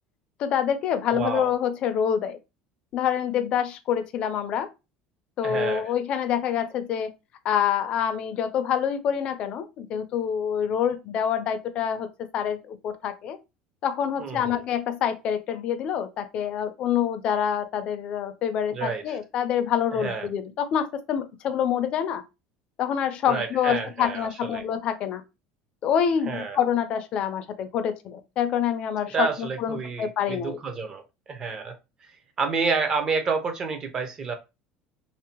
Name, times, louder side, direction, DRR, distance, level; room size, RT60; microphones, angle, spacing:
voice 1, 0.4-2.4 2.9-4.7 5.4-7.1 7.4-12.1 12.3-13.4 13.8-22.2 22.8-25.2 25.8-30.6, left 8 dB, 40° left, 0.4 m, -26 dB
voice 2, 1.1-1.5 5.4-5.9 14.2-14.6 18.7-19.2 20.0-20.3 23.3-24.6 26.3-26.6 29.1-31.0 31.3-31.7 32.4-34.3, right 4 dB, 25° right, 0.5 m, -29 dB
2.6 x 2.0 x 2.8 m
cardioid pair, 165°, 3 cm